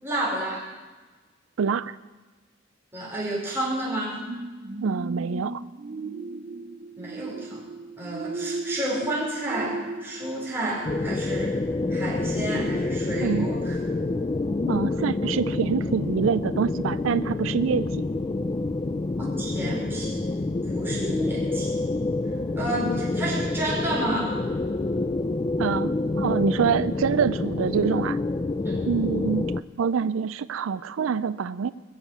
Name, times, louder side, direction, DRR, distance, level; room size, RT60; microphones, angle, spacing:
voice 1, 0.0-0.7 2.9-4.2 7.0-7.6 8.0-11.6 11.9-13.8 19.2-20.3 20.7-21.7 22.6-24.4 28.6-28.9, right 1 dB, 10° right, -4 dB, 5.1 m, -30 dB
voice 2, 1.6-2.0 4.8-5.6 13.2-13.5 14.7-17.9 25.6-28.2 28.8-29.5 29.8-31.7, right 6 dB, 90° right, 16 dB, 0.4 m, -25 dB
sound 1, 4.3-11.7 12.1-12.2, right 2 dB, 40° right, 0.6 m, -36 dB
sound 2, 10.8-29.6, left 2 dB, 25° left, 0.4 m, -27 dB
22.0 x 7.3 x 8.3 m, 1.3 s
head